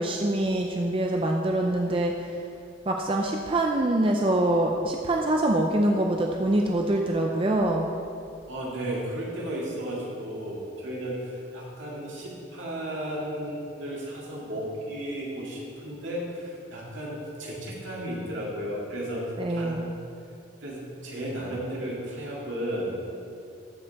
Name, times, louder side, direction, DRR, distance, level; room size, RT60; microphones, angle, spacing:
voice 1, 0.0-2.4 2.9-7.9 19.4-19.9, right 1 dB, 25° right, 1 dB, 0.4 m, -25 dB
voice 2, 8.5-19.8 20.6-23.2, right 1 dB, 75° right, -4 dB, 2.2 m, -34 dB
13.5 x 5.3 x 4.2 m, 2.5 s
head